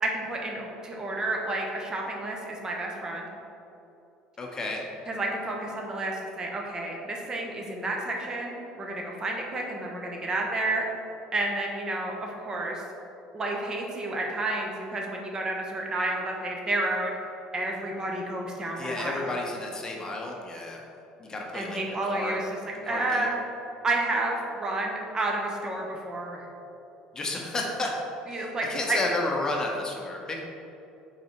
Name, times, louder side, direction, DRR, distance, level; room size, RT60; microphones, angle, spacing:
voice 1, 0.0-3.3 5.1-10.8 11.3-12.8 13.3-17.2 17.5-19.4 21.5-23.4 23.8-26.5 28.3-29.0, right 2 dB, 30° right, 0 dB, 1.0 m, -30 dB
voice 2, 4.4-4.8 18.8-20.8 21.2-21.8 22.1-22.4 22.8-23.3 27.1-28.0 28.3-30.4, left 2 dB, 25° left, 0 dB, 0.9 m, -32 dB
5.3 x 4.1 x 4.6 m, 2.8 s
supercardioid pair, 95°, 3 cm